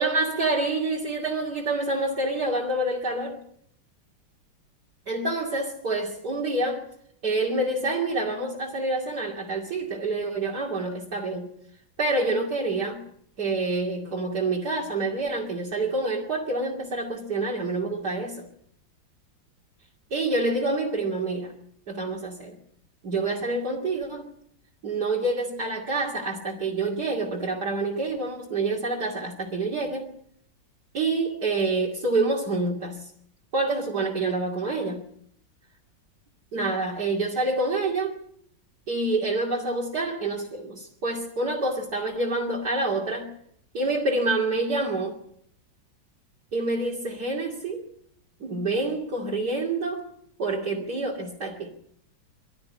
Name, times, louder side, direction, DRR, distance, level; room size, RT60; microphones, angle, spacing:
voice 1, 0.0-3.4 5.1-6.8 7.2-11.5 12.0-13.0 13.4-18.5 20.1-21.5 21.9-22.6 23.0-24.3 24.8-30.1 30.9-33.1 33.5-35.0 36.5-38.2 38.9-43.3 43.7-45.2 46.5-47.9 48.4-50.1 50.4-51.7, right 2 dB, 50° right, 3.1 m, -27 dB
24.0 x 13.0 x 9.7 m
omnidirectional pair, 2.2 m